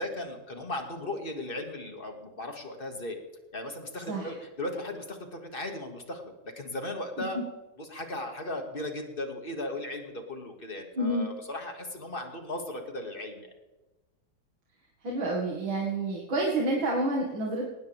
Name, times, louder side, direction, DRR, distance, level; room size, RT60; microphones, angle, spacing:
voice 1, 0.0-3.2 3.5-7.4 7.8-13.5, left 1 dB, 30° left, 4 dB, 2.2 m, -37 dB
voice 2, 11.0-11.3 15.0-17.7, right 1 dB, 80° right, -2 dB, 2.8 m, -29 dB
20.0 x 18.5 x 3.5 m, 1.1 s
omnidirectional pair, 2.1 m